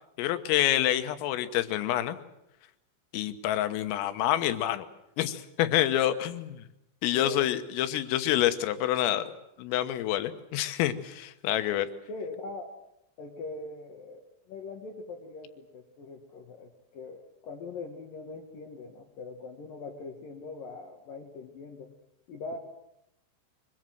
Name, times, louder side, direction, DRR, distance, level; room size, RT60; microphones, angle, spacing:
voice 1, 0.2-2.2 3.1-4.9 5.2-6.6 7.0-9.2 9.6-11.9, left 12 dB, 90° left, 10 dB, 3.8 m, -27 dB
voice 2, 7.1-7.5 12.1-12.7 13.2-14.2 14.5-21.9 22.3-22.6, left 3 dB, 55° left, 3 dB, 2.8 m, -41 dB
23.5 x 22.0 x 7.8 m, 0.84 s
omnidirectional pair, 5.8 m